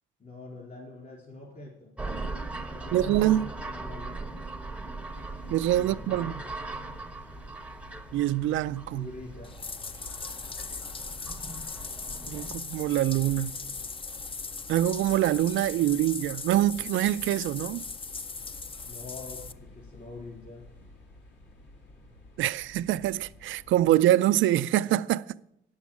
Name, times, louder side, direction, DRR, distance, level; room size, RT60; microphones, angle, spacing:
voice 1, 0.2-1.9 2.7-4.3 5.8-6.5 8.9-9.5 18.9-20.6, left 2 dB, 45° left, 3.9 m, -44 dB
sound 1, 2.0-12.6, right 3 dB, 5° right, 0.7 m, -40 dB
voice 2, 2.9-3.5 5.5-6.4 8.1-9.1 12.3-13.6 14.7-17.9 22.4-25.3, right 13 dB, 75° right, 0.4 m, -25 dB
sound 2, 5.1-24.0, left 1 dB, 70° left, 2.8 m, -50 dB
Bathtub (filling or washing), 9.4-19.5, left 4 dB, 25° left, 0.5 m, -39 dB
9.4 x 7.2 x 7.2 m
cardioid pair, 90°, 20 cm